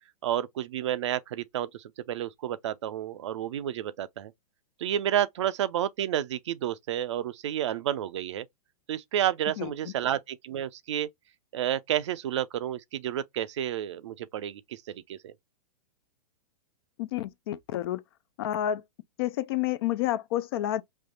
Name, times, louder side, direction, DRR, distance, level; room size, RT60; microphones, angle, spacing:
voice 1, 0.2-4.3 4.8-8.4 8.9-11.1 11.5-15.3, right 11 dB, 50° right, 0.5 m, -30 dB
voice 2, 9.6-9.9 17.0-18.0 18.4-18.8 19.2-20.8, left 12 dB, 40° left, 0.4 m, -30 dB
5.4 x 2.7 x 2.6 m
figure-of-eight pair, 105°, 19 cm